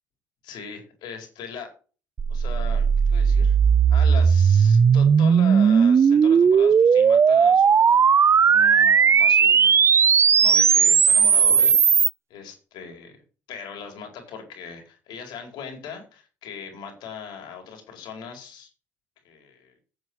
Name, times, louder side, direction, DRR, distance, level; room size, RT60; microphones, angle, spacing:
voice 1, 0.4-1.7 2.3-3.6 3.9-8.0 8.5-9.8 10.4-11.8 12.3-13.2 13.5-18.7 19.2-19.7, left 6 dB, 75° left, 3 dB, 4.6 m, -39 dB
sound 1, 2.2-12.1, right 6 dB, 35° right, 0.5 m, -17 dB
9.8 x 7.4 x 6.3 m, 0.37 s
supercardioid pair, 80°, 8 cm